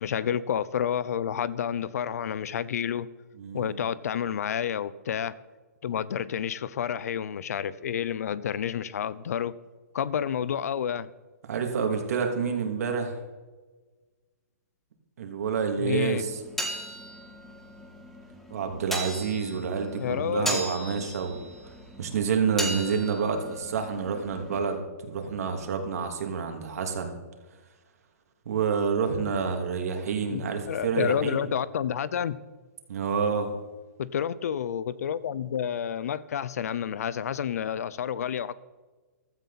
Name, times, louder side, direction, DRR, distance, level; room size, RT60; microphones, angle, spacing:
voice 1, 0.0-3.1 3.5-5.3 5.8-9.5 9.9-11.1 15.8-16.3 20.0-20.6 30.3-32.4 34.0-38.5, left 8 dB, 70° left, 18 dB, 0.7 m, -29 dB
voice 2, 3.4-3.8 11.5-13.1 15.2-16.4 18.5-21.4 22.0-27.2 28.5-31.4 32.9-33.5, right 6 dB, 65° right, 4 dB, 2.8 m, -28 dB
sound 1, 16.2-24.8, equal, 5° left, 1.7 m, -37 dB
15.5 x 13.0 x 4.2 m, 1.3 s
hypercardioid pair, 155°, 9 cm